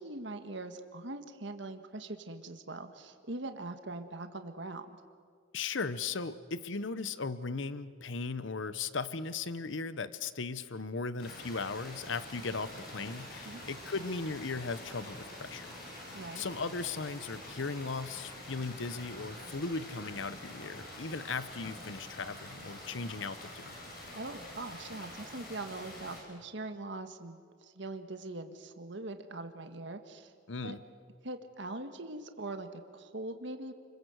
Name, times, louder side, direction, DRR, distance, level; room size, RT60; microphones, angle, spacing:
voice 1, 0.0-5.0 13.4-13.6 16.1-16.5 24.1-30.3 30.6-30.8 31.2-33.7, right 2 dB, 65° right, 7 dB, 1.6 m, -42 dB
voice 2, 5.5-15.7 16.4-23.8 30.5-30.8, left 4 dB, 70° left, 14 dB, 0.9 m, -37 dB
sound 1, 11.2-26.2, left 1 dB, 50° left, 7.5 m, -46 dB
29.5 x 22.0 x 7.9 m, 2.1 s
head